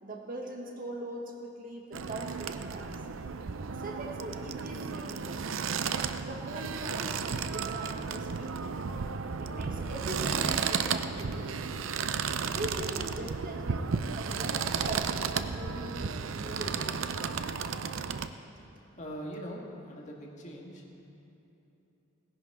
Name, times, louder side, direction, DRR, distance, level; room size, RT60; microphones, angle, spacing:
voice 1, 0.0-2.9 3.7-5.4 6.2-8.6 9.4-11.5 12.5-17.1, right 1 dB, 45° right, 0 dB, 1.6 m, -41 dB
sound 1, 1.9-18.3, right 5 dB, 75° right, 0.5 m, -33 dB
voice 2, 19.0-20.8, equal, 40° left, -1 dB, 1.8 m, -41 dB
17.5 x 11.0 x 4.8 m, 3.0 s
head